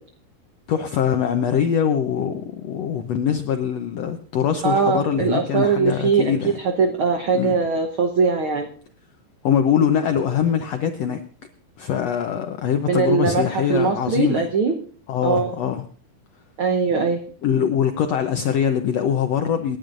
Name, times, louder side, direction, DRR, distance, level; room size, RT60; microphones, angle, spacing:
voice 1, 0.7-6.6 7.3-7.5 9.4-11.2 11.8-14.5 15.1-15.8 17.4-19.8, left 8 dB, 80° left, 6 dB, 1.5 m, -22 dB
voice 2, 4.6-6.3 6.6-8.7 12.9-14.8 15.2-15.5 16.6-17.2, right 5 dB, 75° right, 5 dB, 1.2 m, -21 dB
27.5 x 10.5 x 2.6 m, 0.44 s
omnidirectional pair, 4.0 m